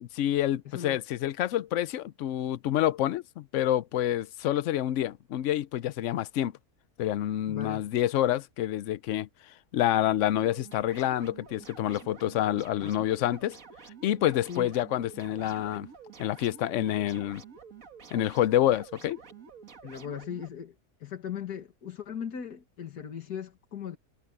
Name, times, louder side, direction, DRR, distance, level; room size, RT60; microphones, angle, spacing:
voice 1, 0.0-6.5 7.0-9.3 9.7-13.6 14.0-15.9 16.2-17.4 18.1-19.2, left 12 dB, 65° left, 0.8 m, -28 dB
voice 2, 0.7-1.0 7.5-7.8 12.8-12.9 14.5-14.7 19.8-20.8 21.0-24.0, left 8 dB, 80° left, 2.3 m, -38 dB
sound 1, 10.4-20.5, right 6 dB, 60° right, 2.2 m, -49 dB
omnidirectional pair, 1.7 m